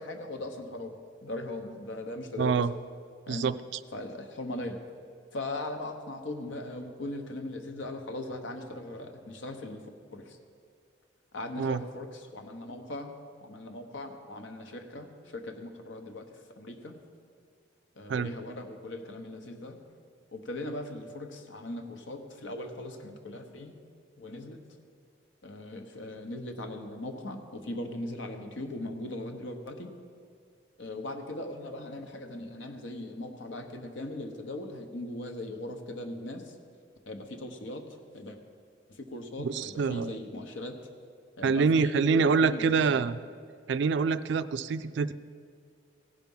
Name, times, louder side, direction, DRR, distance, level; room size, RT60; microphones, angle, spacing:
voice 1, 0.0-2.6 3.3-3.5 3.9-4.8 5.3-10.4 11.3-13.1 13.4-17.0 18.0-19.8 20.3-23.7 24.2-24.6 25.4-29.9 30.8-36.5 37.1-37.9 38.1-38.4 38.9-40.8 41.4-42.8, left 1 dB, 70° left, 6 dB, 0.9 m, -39 dB
voice 2, 2.4-2.7 3.3-3.8 11.6-11.8 18.1-18.3 39.4-40.2 41.4-43.2 43.7-45.1, right 5 dB, 65° right, 14 dB, 0.3 m, -26 dB
16.0 x 5.9 x 5.4 m, 2.2 s
head